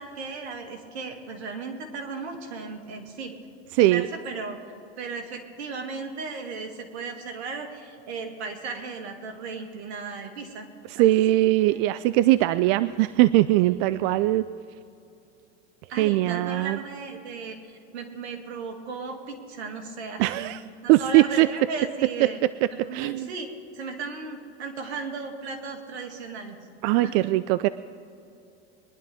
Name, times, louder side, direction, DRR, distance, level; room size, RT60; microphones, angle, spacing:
voice 1, 0.0-3.3 3.8-10.7 11.0-11.8 13.8-13.9 15.9-20.5 20.8-22.4 22.7-26.6 27.0-27.2, right 4 dB, 80° right, 3 dB, 2.4 m, -36 dB
voice 2, 3.7-4.1 11.0-14.4 16.0-16.8 20.2-20.6 20.9-21.5 22.2-22.3 22.9-23.3 26.8-27.7, right 16 dB, 55° right, 15 dB, 0.4 m, -20 dB
22.5 x 11.0 x 3.6 m, 2.6 s
hypercardioid pair, 110°, 32 cm